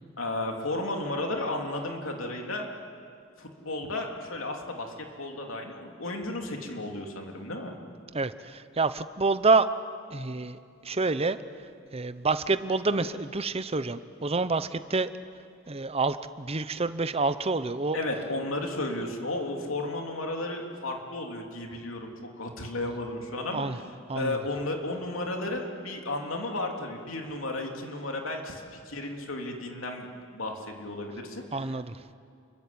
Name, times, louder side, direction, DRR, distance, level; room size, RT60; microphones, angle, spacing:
voice 1, 0.2-2.7 3.4-7.8 17.9-23.6 24.1-31.7, left 2 dB, 75° left, 2 dB, 3.2 m, -33 dB
voice 2, 8.1-9.7 10.1-11.4 11.9-15.1 15.7-18.0 23.5-23.8 24.1-24.4 31.5-32.0, right 3 dB, 30° right, 12 dB, 0.8 m, -27 dB
29.0 x 22.5 x 8.8 m, 2.3 s
head